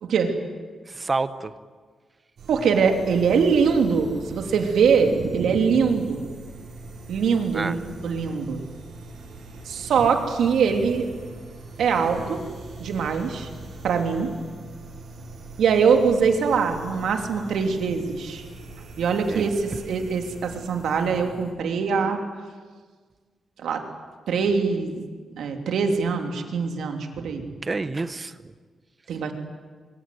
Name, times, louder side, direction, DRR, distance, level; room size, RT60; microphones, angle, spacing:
voice 1, 0.0-0.4 2.5-6.3 7.1-8.6 9.6-11.1 11.8-12.4 12.8-13.5 13.8-14.3 15.6-18.4 19.0-22.2 23.6-23.8 24.3-25.0 25.4-27.5 29.1-29.3, right 5 dB, 80° right, 4 dB, 3.3 m, -23 dB
voice 2, 0.9-1.5 7.5-7.8 19.3-19.5 27.6-28.5, right 3 dB, 25° right, 12 dB, 1.1 m, -28 dB
sound 1, 2.4-21.5, right 2 dB, 65° right, 7.4 m, -42 dB
24.5 x 24.0 x 9.6 m, 1.5 s
wide cardioid pair, 170°, 0 cm